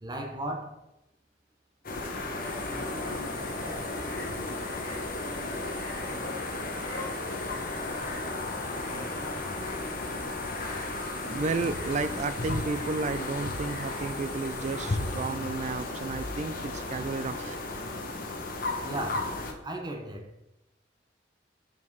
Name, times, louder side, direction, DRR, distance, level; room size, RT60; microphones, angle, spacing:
voice 1, 0.0-0.8 18.8-19.3 19.6-20.3, right 1 dB, 20° right, 0.7 m, -35 dB
sound 1, 1.8-19.5, left 2 dB, 50° left, 0.9 m, -34 dB
sound 2, 2.4-15.3, left 1 dB, 25° left, 2.3 m, -43 dB
voice 2, 11.2-17.6, right 4 dB, 40° right, 0.3 m, -33 dB
5.4 x 4.8 x 4.6 m
head